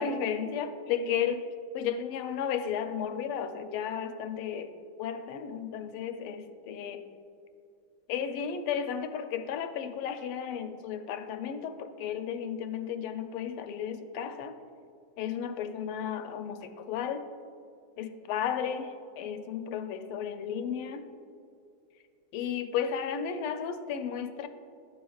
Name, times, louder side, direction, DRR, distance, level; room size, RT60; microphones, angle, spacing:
voice 1, 0.0-1.5 1.7-4.7 5.0-7.1 8.1-14.5 15.2-17.2 18.0-21.1 22.3-24.5, left 8 dB, 85° left, 9 dB, 1.5 m, -33 dB
12.0 x 6.3 x 2.3 m, 2.5 s
omnidirectional pair, 2.4 m